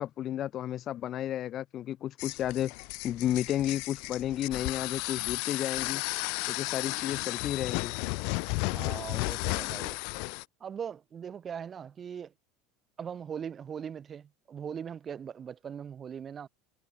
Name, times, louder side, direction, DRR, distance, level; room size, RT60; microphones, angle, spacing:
voice 1, 0.0-2.7 3.0-6.0 6.5-7.9, left 12 dB, 35° left, 0.8 m, -32 dB
sound 1, 2.2-10.4, left 36 dB, 60° left, 0.5 m, -34 dB
voice 2, 8.6-10.0 10.6-12.3 13.0-16.5, right 8 dB, 25° right, 1.8 m, -40 dB
supercardioid pair, 150°, 0 cm